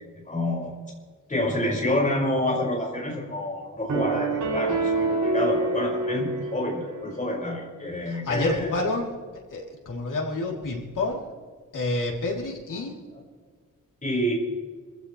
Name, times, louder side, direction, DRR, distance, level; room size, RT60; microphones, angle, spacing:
voice 1, 0.2-0.8 1.3-8.7 12.7-12.8 14.0-14.3, left 1 dB, 25° left, -3 dB, 5.6 m, -28 dB
sound 1, 3.9-7.1, right 3 dB, 70° right, 2.9 m, -27 dB
voice 2, 8.1-11.3 11.7-13.0, left 2 dB, 80° left, -2 dB, 3.4 m, -29 dB
27.0 x 15.5 x 3.3 m, 1.5 s
wide cardioid pair, 150°, 31 cm